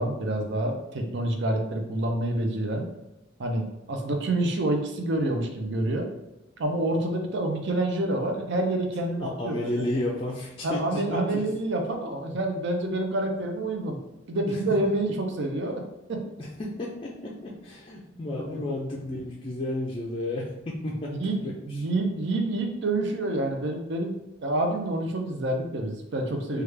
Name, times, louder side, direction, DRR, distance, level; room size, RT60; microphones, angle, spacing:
voice 1, 0.0-2.9 3.4-6.1 6.6-9.8 10.6-14.0 14.3-15.8 16.1-16.2 18.4-18.6 21.2-26.6, right 1 dB, 60° right, 3 dB, 0.5 m, -28 dB
voice 2, 9.2-11.4 14.5-14.6 16.4-21.2 21.4-21.9 26.5-26.6, left 1 dB, 25° left, -4 dB, 0.4 m, -32 dB
3.2 x 2.3 x 3.2 m, 0.95 s
head